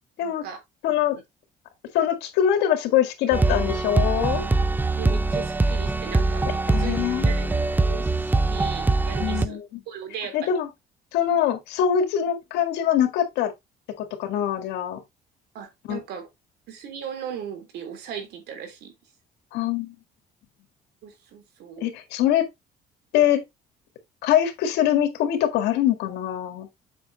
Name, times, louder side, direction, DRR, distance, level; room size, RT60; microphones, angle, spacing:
voice 1, 0.2-0.6 4.6-4.7 5.0-7.5 7.8-9.6 9.9-10.6 15.5-16.3 16.7-18.9 21.0-22.0, right 8 dB, 75° right, 3.3 m, -38 dB
voice 2, 0.8-1.2 1.9-4.4 6.7-7.6 9.2-9.8 10.3-10.7 11.1-13.5 14.0-15.0 15.9-16.0 19.5-19.9 21.8-22.5 23.1-23.4 24.2-26.7, left 10 dB, 90° left, 1.9 m, -23 dB
sound 1, 3.3-9.5, right 3 dB, 10° right, 0.6 m, -23 dB
7.9 x 6.0 x 3.1 m
cardioid pair, 110°, 17 cm